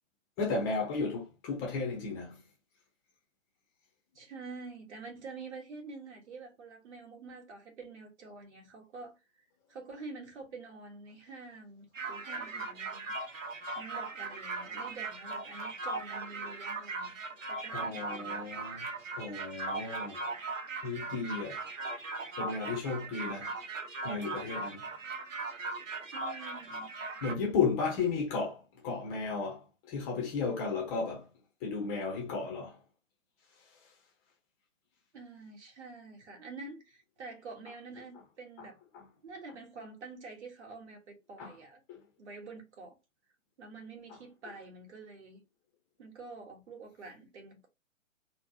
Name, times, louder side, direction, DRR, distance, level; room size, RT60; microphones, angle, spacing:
voice 1, 0.4-2.4 17.7-18.9 19.2-20.2 20.8-21.6 22.4-23.6 24.0-24.8 27.2-31.3 31.6-32.8 38.6-38.7 38.9-39.1 41.4-41.5 41.9-42.0, left 4 dB, 15° left, 0.6 m, -34 dB
voice 2, 4.1-9.2 9.7-13.1 13.7-18.5 26.0-26.9 35.1-38.8 39.2-41.8 42.2-43.0 43.6-45.4 46.0-47.7, right 3 dB, 60° right, 1.5 m, -47 dB
sound 1, 11.9-27.3, right 3 dB, 80° right, 0.9 m, -39 dB
3.9 x 2.1 x 2.8 m
figure-of-eight pair, 130°, 39 cm